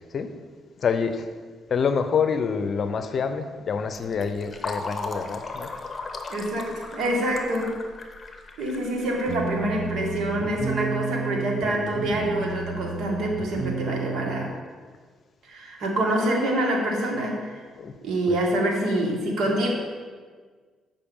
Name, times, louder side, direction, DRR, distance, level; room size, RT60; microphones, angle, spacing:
voice 1, 0.8-1.3 1.7-5.7 17.8-17.9 18.3-18.4, left 6 dB, 50° left, 9 dB, 0.7 m, -26 dB
Fill (with liquid), 3.9-10.3, left 3 dB, 30° left, 1.0 m, -37 dB
voice 2, 6.3-7.7 8.6-14.5 15.4-17.6 18.0-19.7, right 1 dB, 70° right, -1 dB, 1.9 m, -26 dB
sound 1, 9.3-14.5, right 4 dB, 40° right, 0.9 m, -32 dB
8.5 x 5.3 x 5.4 m, 1.5 s
cardioid pair, 90°, 0 cm